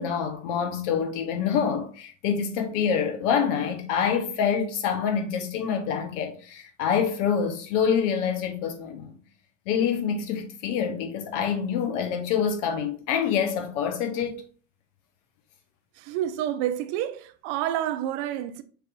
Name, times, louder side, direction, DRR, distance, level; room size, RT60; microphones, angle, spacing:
voice 1, 0.0-9.1 9.7-14.3, left 7 dB, 65° left, 1.0 m, -26 dB
voice 2, 16.0-18.6, right 11 dB, 55° right, 0.6 m, -29 dB
6.7 x 3.0 x 2.5 m
hypercardioid pair, 75°, 40 cm